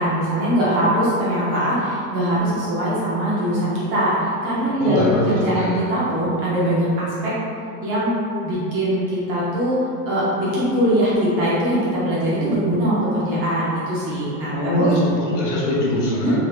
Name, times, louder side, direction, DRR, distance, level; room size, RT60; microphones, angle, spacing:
voice 1, 0.0-7.3 7.8-8.1 8.4-9.8 10.1-14.9 16.2-16.4, right 1 dB, 35° right, -8 dB, 0.6 m, -21 dB
voice 2, 4.8-5.8 14.5-16.4, left 1 dB, 50° left, -5 dB, 0.6 m, -22 dB
2.8 x 2.0 x 3.1 m, 2.5 s
supercardioid pair, 175°, 49 cm